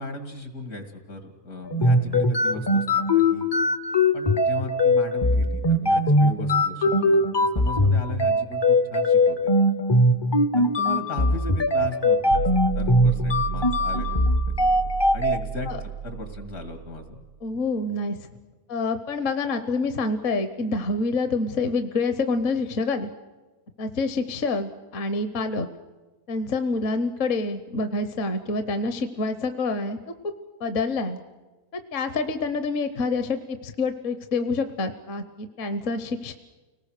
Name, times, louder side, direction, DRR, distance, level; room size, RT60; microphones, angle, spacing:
voice 1, 0.0-3.5 4.1-9.5 10.5-12.5 12.8-14.3 14.6-14.8 15.1-15.7 16.0-17.2, left 2 dB, 75° left, 7 dB, 3.0 m, -36 dB
sound 1, 1.7-15.4, left 1 dB, 35° left, 0.4 m, -21 dB
sound 2, 12.3-17.3, right 8 dB, 85° right, 1.4 m, -32 dB
voice 2, 17.4-18.2 18.7-23.1 23.8-25.7 26.3-30.0 30.2-30.3 30.6-31.2 31.7-36.3, left 3 dB, 60° left, 9 dB, 1.3 m, -27 dB
30.0 x 19.5 x 6.6 m, 1.3 s
omnidirectional pair, 1.6 m